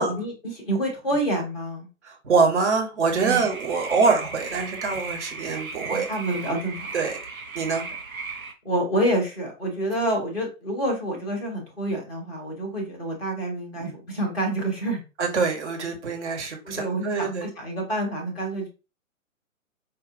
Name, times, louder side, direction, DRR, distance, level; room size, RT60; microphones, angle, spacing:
voice 1, 0.0-1.9 3.2-3.4 5.9-6.9 8.6-15.0 16.6-18.7, right 1 dB, 5° right, 0.5 m, -28 dB
voice 2, 2.0-6.1 6.9-7.9 13.8-13.9 15.2-17.5, right 4 dB, 55° right, 1.3 m, -25 dB
sound 1, 3.2-8.5, right 4 dB, 80° right, 1.0 m, -36 dB
4.8 x 2.6 x 2.5 m
figure-of-eight pair, 125°, 41 cm